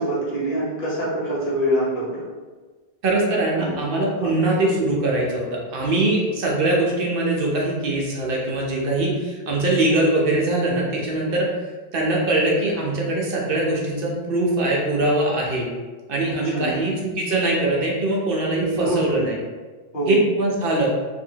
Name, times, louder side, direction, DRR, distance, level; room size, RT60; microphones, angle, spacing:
voice 1, 0.0-2.2 3.6-3.8 4.2-4.3 16.3-16.8 18.5-19.3 19.9-20.2, right 1 dB, 55° left, -8 dB, 1.2 m, -25 dB
voice 2, 3.0-11.5 11.9-15.7 16.1-19.4 20.1-20.9, right 2 dB, 65° right, -2 dB, 0.8 m, -22 dB
2.7 x 2.6 x 2.7 m, 1.4 s
omnidirectional pair, 1.0 m